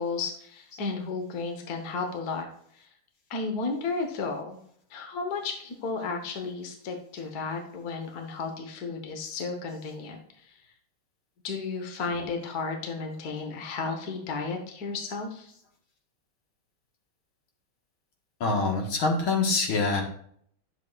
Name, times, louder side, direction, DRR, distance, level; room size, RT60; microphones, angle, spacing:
voice 1, 0.0-2.5 2.7-2.9 3.3-4.6 4.9-10.6 11.4-15.5, left 4 dB, 50° left, 4 dB, 1.6 m, -33 dB
voice 2, 18.4-20.0, left 3 dB, 70° left, 1 dB, 2.3 m, -25 dB
10.5 x 7.5 x 2.4 m, 0.62 s
omnidirectional pair, 2.3 m